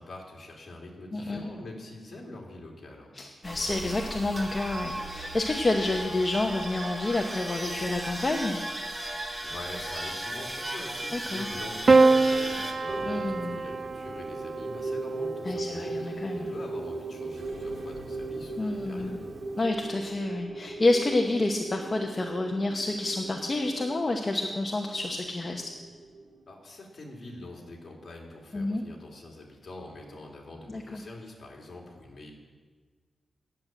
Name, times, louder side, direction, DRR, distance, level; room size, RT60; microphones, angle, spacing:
voice 1, 0.0-3.1 9.4-19.3 26.5-32.3, left 2 dB, 50° left, -1 dB, 2.8 m, -44 dB
voice 2, 1.1-1.5 3.1-8.6 11.1-11.5 13.0-13.6 15.4-16.5 18.6-19.2 19.6-25.7 28.5-28.8 30.7-31.0, left 2 dB, 30° left, 2 dB, 0.9 m, -29 dB
sound 1, 3.4-12.7, right 1 dB, 20° right, 1.4 m, -36 dB
Piano, 11.9-16.3 17.5-18.2, right 3 dB, 45° right, 0.4 m, -25 dB
sound 2, 12.9-26.4, right 2 dB, 85° right, 1.6 m, -38 dB
10.5 x 7.4 x 9.0 m, 1.5 s
wide cardioid pair, 125°, 0 cm